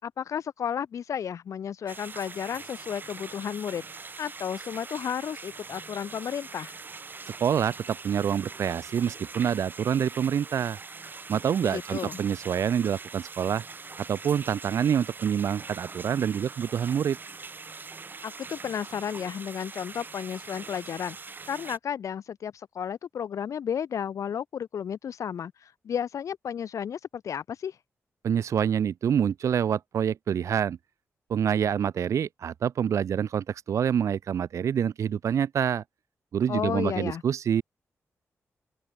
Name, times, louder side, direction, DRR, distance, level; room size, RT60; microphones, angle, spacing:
voice 1, 0.0-3.8 4.2-6.8 11.6-12.2 18.2-21.2 21.5-27.8 36.5-37.2, left 8 dB, 80° left, 3.0 m, -33 dB
sound 1, 1.9-21.8, right 4 dB, 40° right, 1.9 m, -43 dB
voice 2, 7.3-10.8 11.3-13.6 14.1-17.2 28.2-30.8 31.3-35.8 36.3-37.6, right 8 dB, 70° right, 0.5 m, -26 dB
open air
wide cardioid pair, 100°, 5 cm